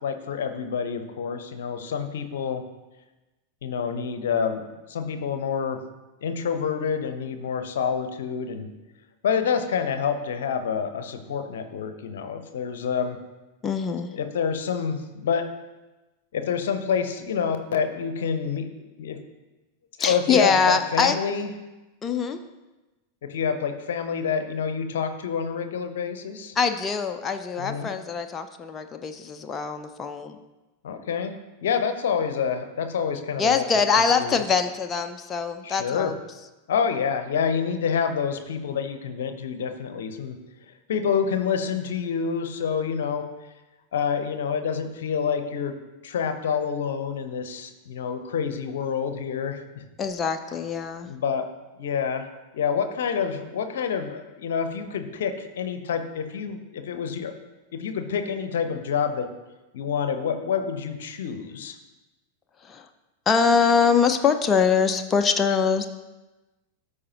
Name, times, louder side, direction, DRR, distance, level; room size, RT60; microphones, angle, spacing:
voice 1, 0.0-2.6 3.6-4.6 4.9-5.8 6.2-8.7 9.2-13.2 14.1-15.4 16.3-19.2 20.0-21.5 23.2-26.5 27.6-27.9 30.8-31.3 31.6-33.6 34.0-34.4 35.6-36.1 36.7-40.4 40.9-43.3 43.9-45.7 46.0-49.8 51.0-51.5 51.8-52.3 52.5-57.3 57.7-59.3 59.7-61.8, left 6 dB, 60° left, 9 dB, 0.8 m, -27 dB
voice 2, 13.6-14.1 20.0-21.2 22.0-22.4 26.6-30.4 33.4-36.1 50.0-51.1 62.7-62.8 63.3-65.9, left 5 dB, 20° left, 6 dB, 0.5 m, -23 dB
13.5 x 4.8 x 2.9 m, 1.1 s
figure-of-eight pair, 90°, 0 cm